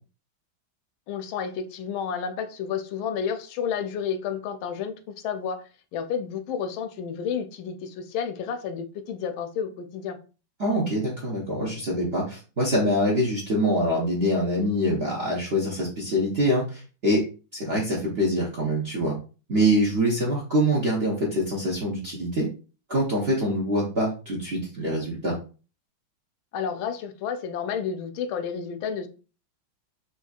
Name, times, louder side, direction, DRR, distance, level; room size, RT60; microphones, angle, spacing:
voice 1, 1.1-5.6 5.9-10.2 26.5-29.1, left 7 dB, 85° left, 1.4 m, -31 dB
voice 2, 10.6-17.2 17.5-19.1 19.5-22.5 22.9-25.4, equal, 50° right, 0.7 m, -24 dB
4.4 x 2.7 x 2.4 m
omnidirectional pair, 2.2 m